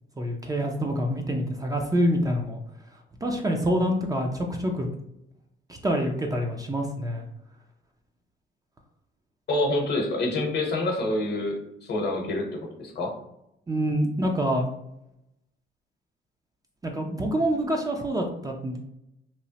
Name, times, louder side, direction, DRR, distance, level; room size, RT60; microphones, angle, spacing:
voice 1, 0.2-2.6 3.2-4.9 5.7-7.3 13.7-14.7 16.8-18.8, equal, 20° right, 2 dB, 0.4 m, -26 dB
voice 2, 9.5-12.5 12.8-13.1, left 2 dB, 55° left, 1 dB, 0.8 m, -27 dB
3.0 x 2.0 x 2.8 m, 0.81 s
cardioid pair, 90°, 20 cm